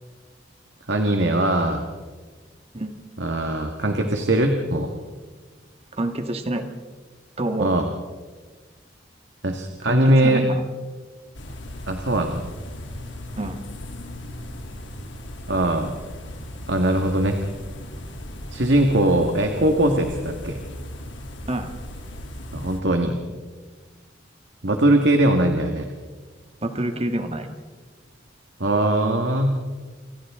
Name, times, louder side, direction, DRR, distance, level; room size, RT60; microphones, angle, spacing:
voice 1, 0.9-1.8 3.2-4.9 7.6-7.9 9.4-10.4 11.9-12.4 15.5-15.9 16.7-17.4 18.5-20.6 22.5-23.2 24.6-25.9 28.6-29.6, right 1 dB, 75° right, 4 dB, 1.7 m, -21 dB
voice 2, 5.9-6.7 7.4-7.7 9.8-10.7 13.4-13.6 21.5-21.7 26.6-27.5, right 1 dB, 35° right, 6 dB, 1.7 m, -27 dB
sound 1, 11.3-22.8, left 1 dB, 90° left, 3.0 m, -37 dB
29.0 x 25.0 x 3.7 m, 1.4 s
head